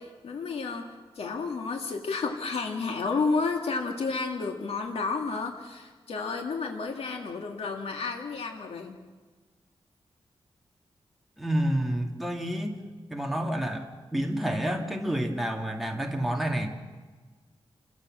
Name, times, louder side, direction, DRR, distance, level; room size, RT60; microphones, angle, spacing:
voice 1, 0.0-9.0, left 4 dB, 85° left, 3 dB, 2.1 m, -31 dB
voice 2, 11.4-12.8 13.1-16.7, right 1 dB, ahead, 1 dB, 2.1 m, -29 dB
27.5 x 17.0 x 7.5 m, 1.4 s
wide cardioid pair, 100°, 10 cm